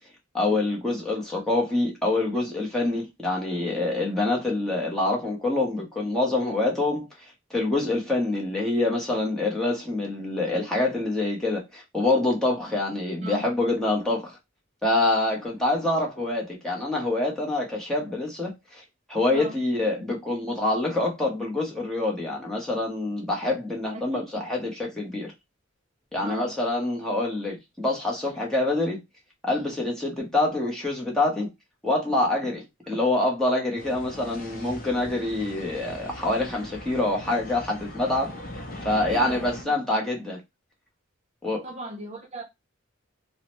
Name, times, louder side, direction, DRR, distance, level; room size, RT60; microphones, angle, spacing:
voice 1, 0.3-7.1 7.5-14.4 14.8-18.8 19.1-25.3 26.1-29.0 29.4-31.5 31.8-38.3 38.8-40.4 41.4-41.6, left 2 dB, 5° left, 0.8 m, -26 dB
voice 2, 23.9-24.4 26.2-26.5 32.8-32.9 39.1-39.8 41.6-42.4, right 2 dB, 30° right, 0.5 m, -38 dB
sound 1, 33.8-39.6, left 1 dB, 45° left, 0.6 m, -40 dB
2.7 x 2.0 x 3.0 m
head